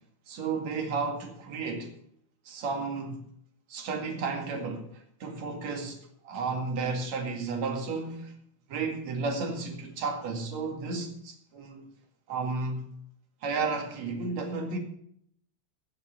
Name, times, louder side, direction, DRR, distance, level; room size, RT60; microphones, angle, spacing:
voice 1, 0.3-1.9 2.5-3.2 3.7-8.3 8.7-11.8 12.3-12.9 13.4-14.8, right 4 dB, 50° right, 2.4 m, -33 dB
15.0 x 7.4 x 6.6 m
omnidirectional pair, 5.4 m